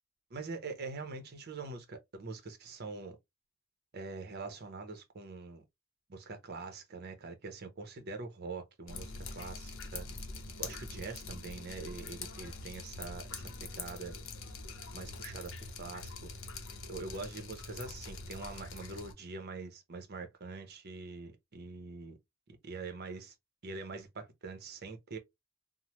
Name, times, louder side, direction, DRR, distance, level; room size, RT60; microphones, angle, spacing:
voice 1, 0.3-3.2 3.9-5.6 6.1-10.1 10.6-14.1 14.9-15.5 15.8-16.1 16.9-22.2 22.6-23.3 23.6-25.2, right 3 dB, 50° right, 0.7 m, -44 dB
Drip, 8.9-19.1, left 3 dB, 65° left, 0.7 m, -44 dB
3.1 x 2.1 x 2.9 m
head